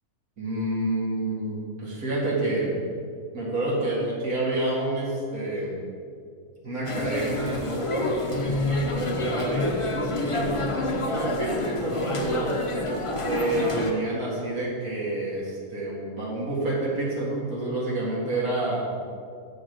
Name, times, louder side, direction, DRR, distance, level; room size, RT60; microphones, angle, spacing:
voice 1, 0.4-2.8 3.3-5.8 6.6-10.5 11.1-12.5 13.2-18.9, right 2 dB, 75° right, -6 dB, 2.4 m, -28 dB
Restaurant - fast foot - ambiance - french walla, 6.8-13.9, left 2 dB, 25° left, 0.7 m, -28 dB
7.8 x 6.2 x 6.5 m, 2.3 s
omnidirectional pair, 1.6 m